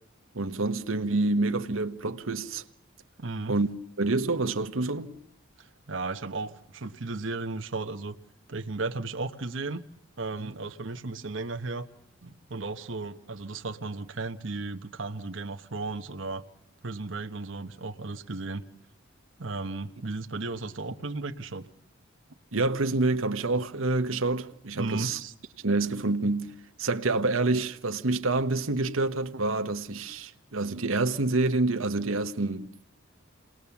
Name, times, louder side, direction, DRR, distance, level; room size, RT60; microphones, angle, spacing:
voice 1, 0.3-2.6 3.5-3.7 4.0-5.1 10.4-10.5 22.5-25.2 25.6-32.7, right 2 dB, 90° right, 1.2 m, -27 dB
voice 2, 3.2-3.6 5.6-8.2 8.5-9.8 10.2-11.9 12.2-16.4 16.8-18.6 19.4-21.7 24.8-25.3, right 3 dB, 65° right, 1.1 m, -35 dB
28.5 x 19.5 x 7.1 m
head